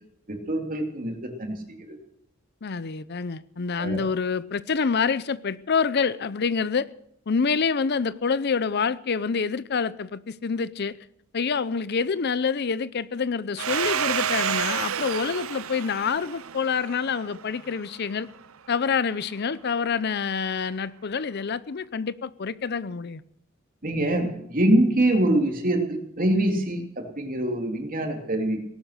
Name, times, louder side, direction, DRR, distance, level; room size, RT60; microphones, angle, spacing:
voice 1, 0.3-2.0 3.8-4.1 23.8-28.6, right 1 dB, 45° right, 2.9 m, -24 dB
voice 2, 2.6-6.9 7.3-11.0 11.3-18.3 18.7-23.2, left 5 dB, 55° left, 0.6 m, -27 dB
Domestic sounds home sounds, 13.6-18.0, right 8 dB, 85° right, 0.7 m, -30 dB
18.5 x 11.5 x 6.7 m
head